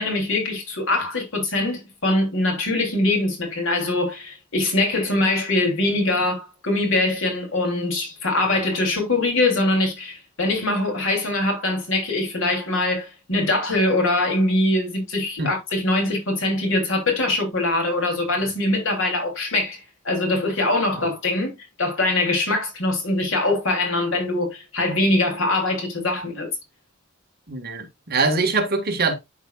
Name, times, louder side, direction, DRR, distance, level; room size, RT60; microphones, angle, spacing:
voice 1, 0.0-21.5 21.8-26.5, left 2 dB, 75° left, 3.2 m, -23 dB
voice 2, 27.5-29.1, right 3 dB, 50° right, 1.4 m, -23 dB
11.5 x 4.7 x 2.4 m
head